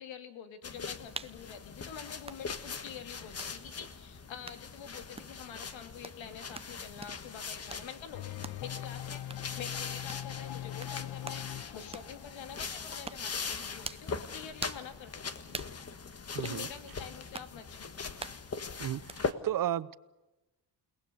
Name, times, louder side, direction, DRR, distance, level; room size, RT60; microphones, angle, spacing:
voice 1, 0.0-8.3 8.6-15.6 16.4-18.0, left 8 dB, 90° left, 7 dB, 2.4 m, -47 dB
sound 1, 0.6-19.3, left 5 dB, 35° left, 1.5 m, -41 dB
sound 2, 1.2-1.4 2.2-2.4 3.4-3.5 4.5-4.6 5.2-5.4 6.0-6.2 6.5-6.7 7.0-7.2 7.7-7.9 8.4-8.6 9.3-9.5 10.1-10.3 10.8-11.0 11.2-11.4 11.9-12.1 13.1-13.3 13.8-14.1 14.6-14.9 15.5-15.8 16.4-16.6 17.3-17.5 18.2-18.4 19.1-19.2, right 3 dB, 15° right, 0.7 m, -43 dB
sound 3, 8.1-13.8, left 12 dB, 60° left, 0.7 m, -42 dB
voice 2, 16.3-16.7 18.8-20.0, right 11 dB, 50° right, 18 dB, 0.7 m, -33 dB
29.5 x 19.0 x 6.8 m, 1.0 s
cardioid pair, 140°, 44 cm